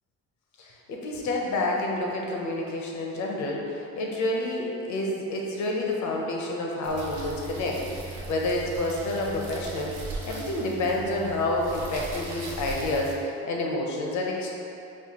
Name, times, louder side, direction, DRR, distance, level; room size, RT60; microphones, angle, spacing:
voice 1, 0.6-10.0 10.2-14.5, left 2 dB, 70° left, -1 dB, 0.7 m, -29 dB
sound 1, 6.8-13.1, right 3 dB, 80° right, 0.7 m, -38 dB
4.2 x 2.5 x 2.8 m, 2.7 s
cardioid pair, 90°, 30 cm